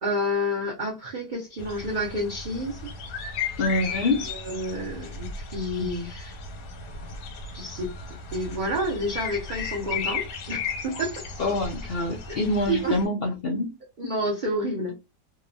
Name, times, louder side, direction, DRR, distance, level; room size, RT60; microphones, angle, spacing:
voice 1, 0.0-2.9 4.3-6.4 7.5-7.9 8.3-11.2 12.7-13.0 14.0-15.0, equal, 85° right, 0.4 m, -29 dB
sound 1, 1.6-13.0, left 5 dB, 90° left, 1.3 m, -35 dB
voice 2, 3.6-4.2 11.4-13.7 14.0-14.1, left 2 dB, 75° left, 0.5 m, -26 dB
2.8 x 2.1 x 2.5 m
omnidirectional pair, 1.7 m